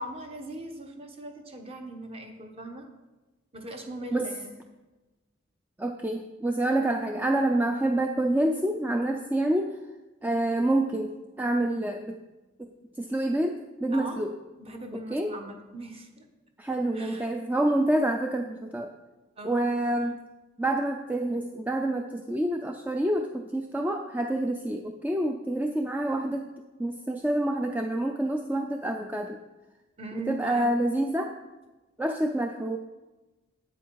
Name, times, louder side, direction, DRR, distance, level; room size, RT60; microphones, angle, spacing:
voice 1, 0.0-2.9 3.5-4.5 13.9-14.2 14.6-16.2 16.9-17.3 19.4-19.7 30.0-30.7, right 1 dB, 30° right, 4 dB, 1.0 m, -40 dB
voice 2, 5.8-9.8 10.2-12.1 12.6-12.7 13.0-14.3 15.1-15.3 16.6-18.9 19.4-20.2 20.6-26.5 26.8-29.4 30.1-31.3 32.0-32.8, right 1 dB, 10° right, 3 dB, 0.4 m, -27 dB
8.8 x 8.1 x 4.6 m, 1.1 s
head